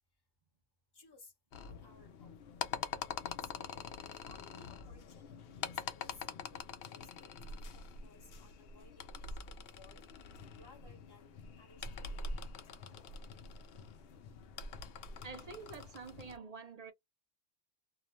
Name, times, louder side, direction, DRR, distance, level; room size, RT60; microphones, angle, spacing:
voice 1, 0.9-1.3 1.7-2.4 2.9-10.0 10.6-12.5 12.9-13.1, left 3 dB, 25° left, 0.9 m, -62 dB
sound 1, 1.5-16.4, left 5 dB, 65° left, 0.7 m, -45 dB
voice 2, 15.2-16.9, right 5 dB, 60° right, 0.4 m, -47 dB
2.4 x 2.1 x 2.9 m
omnidirectional pair, 1.1 m